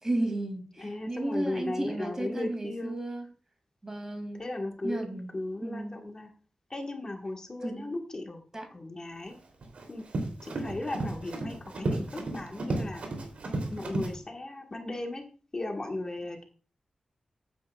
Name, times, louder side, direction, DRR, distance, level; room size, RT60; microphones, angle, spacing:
voice 1, 0.0-3.2 3.8-4.4 4.8-5.3 5.6-6.0 7.6-7.9 8.5-8.7, right 1 dB, 25° right, 5 dB, 2.4 m, -33 dB
voice 2, 0.8-3.0 4.4-6.3 6.7-8.4 8.7-9.3 9.9-10.0 10.4-13.0 13.7-15.2 15.5-16.5, left 2 dB, 30° left, 2 dB, 1.4 m, -36 dB
Run, 9.3-14.1, right 2 dB, 85° right, 2.9 m, -33 dB
14.5 x 9.5 x 2.3 m, 0.39 s
wide cardioid pair, 140°, 2 cm